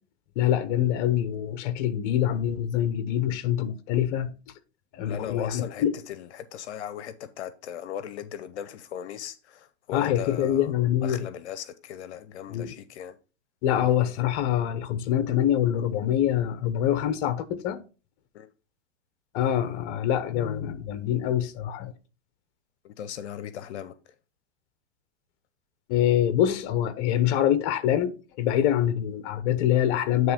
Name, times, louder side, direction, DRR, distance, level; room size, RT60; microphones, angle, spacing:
voice 1, 0.4-4.3 4.9-6.0 9.9-11.3 12.5-12.7 13.6-17.8 19.3-21.9 25.9-30.3, left 11 dB, 45° left, 1.0 m, -25 dB
voice 2, 5.0-10.7 11.0-13.2 18.3-18.5 22.8-24.1, left 10 dB, 75° left, 0.8 m, -38 dB
9.5 x 3.2 x 5.0 m
hypercardioid pair, 130°, 33 cm